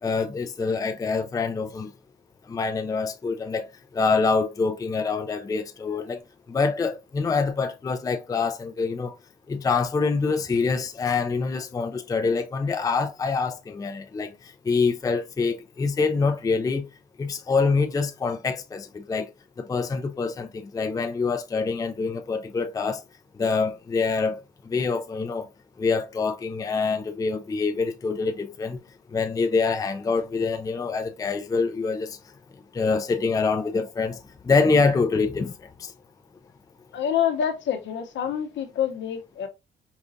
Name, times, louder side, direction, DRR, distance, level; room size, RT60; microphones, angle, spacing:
voice 1, 0.0-1.9 2.5-3.7 3.9-6.2 6.5-9.2 9.5-16.9 17.2-19.3 19.6-23.0 23.3-25.5 25.8-28.8 29.1-32.2 32.7-35.9, left 4 dB, 20° left, 0.4 m, -25 dB
voice 2, 36.9-39.5, left 9 dB, 70° left, 0.8 m, -27 dB
4.9 x 2.3 x 2.6 m
cardioid pair, 90°, 20 cm